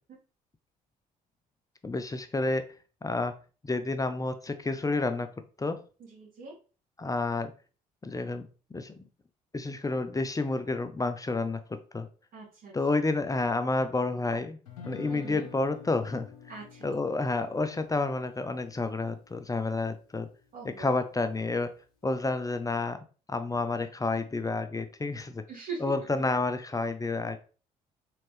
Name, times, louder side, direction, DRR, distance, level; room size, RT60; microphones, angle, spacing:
voice 1, 1.8-2.7 3.0-3.3 3.7-5.3 5.6-5.8 7.0-7.5 8.0-8.5 8.7-8.9 9.5-12.1 12.7-14.6 14.9-16.3 16.8-20.3 20.6-21.7 22.0-23.0 23.3-25.4 25.8-27.4, left 3 dB, 20° left, 9 dB, 0.7 m, -30 dB
voice 2, 6.1-6.5 12.3-12.7 15.1-15.5 16.5-16.6 20.5-21.0 25.5-25.8, right 5 dB, 55° right, -9 dB, 2.3 m, -41 dB
Guitar, 14.7-20.8, left 5 dB, 90° left, 1.0 m, -49 dB
4.3 x 3.7 x 3.3 m, 0.36 s
hypercardioid pair, 55°, 18 cm